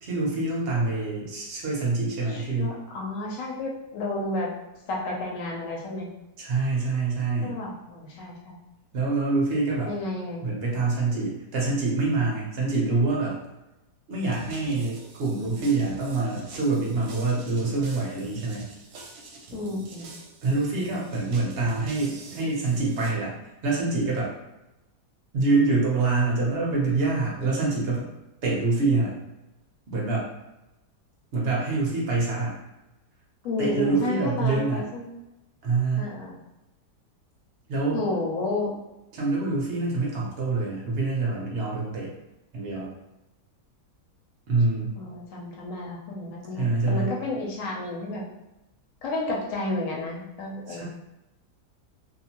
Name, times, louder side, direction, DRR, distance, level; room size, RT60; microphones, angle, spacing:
voice 1, 0.0-2.8 6.4-7.5 8.9-9.9 10.4-13.4 14.1-18.7 20.4-23.3 23.6-24.3 25.3-28.1 28.4-29.1 29.9-30.3 31.3-32.6 33.6-34.8 35.6-36.1 37.7-38.0 39.1-42.1 42.5-42.9 44.5-44.9 46.5-47.1 50.7-50.8, right 3 dB, 55° right, -4 dB, 0.7 m, -25 dB
voice 2, 2.3-4.5 4.9-6.1 7.4-8.6 9.8-10.4 19.5-20.1 33.4-35.1 36.0-36.3 37.9-38.8 45.0-48.2 49.0-50.8, left 2 dB, 65° left, -2 dB, 0.8 m, -31 dB
sound 1, 14.2-23.1, right 1 dB, 75° right, 1.0 m, -43 dB
2.8 x 2.1 x 2.8 m, 0.96 s
omnidirectional pair, 1.8 m